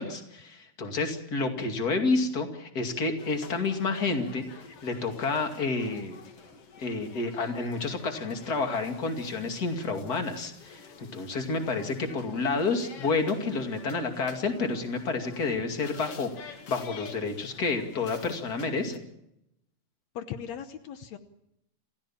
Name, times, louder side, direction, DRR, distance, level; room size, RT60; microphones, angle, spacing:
voice 1, 0.0-4.4 4.8-6.2 6.8-19.0, left 3 dB, 30° left, 5 dB, 2.1 m, -30 dB
sound 1, 3.2-19.0, left 5 dB, 45° left, 2.2 m, -49 dB
voice 2, 20.1-21.2, left 8 dB, 90° left, 9 dB, 1.5 m, -38 dB
27.5 x 16.0 x 7.3 m, 0.83 s
omnidirectional pair, 4.6 m